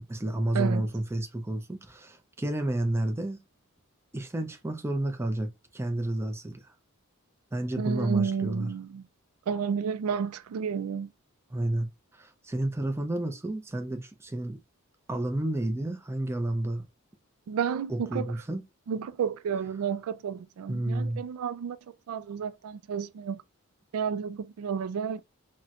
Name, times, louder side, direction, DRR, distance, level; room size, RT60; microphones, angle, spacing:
voice 1, 0.0-3.4 4.1-6.7 7.5-8.7 11.5-14.6 15.1-16.9 17.9-18.6 20.7-21.2, right 1 dB, 10° right, 0.4 m, -31 dB
voice 2, 0.5-0.9 7.8-9.0 9.5-11.1 17.5-18.2 18.9-21.8 22.1-23.4 23.9-25.2, right 7 dB, 75° right, 0.3 m, -31 dB
4.2 x 2.1 x 2.4 m
head